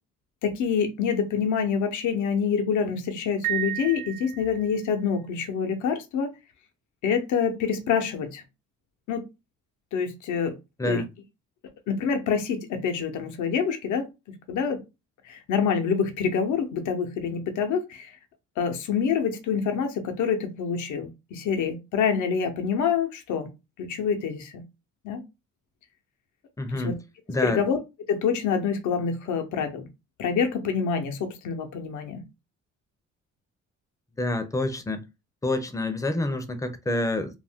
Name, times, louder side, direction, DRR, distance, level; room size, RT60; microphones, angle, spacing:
voice 1, 0.4-6.3 7.0-8.4 9.1-9.3 9.9-10.6 10.8-11.0 11.9-14.1 14.5-14.8 15.2-18.2 18.6-23.5 23.8-24.6 25.0-25.2 26.7-26.9 27.4-27.8 28.1-29.9 30.2-32.2, left 6 dB, 75° left, 0.7 m, -26 dB
Piano, 3.4-4.9, right 14 dB, 90° right, 0.8 m, -32 dB
voice 2, 26.6-26.9 27.3-27.6 34.2-35.0 35.4-37.4, left 2 dB, 10° left, 0.5 m, -27 dB
2.5 x 2.1 x 3.4 m
cardioid pair, 90°, 30 cm